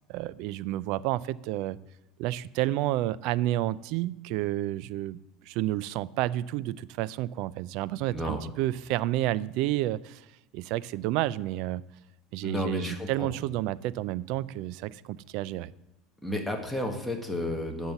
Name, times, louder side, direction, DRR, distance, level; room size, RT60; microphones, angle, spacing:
voice 1, 0.1-1.8 2.2-5.2 5.5-10.2 10.5-11.8 12.3-15.7, right 15 dB, 65° right, 20 dB, 0.4 m, -30 dB
voice 2, 8.1-8.4 12.4-13.3 16.2-17.9, left 1 dB, ahead, 2 dB, 1.5 m, -32 dB
10.5 x 5.7 x 7.0 m, 0.90 s
supercardioid pair, 135°, 0 cm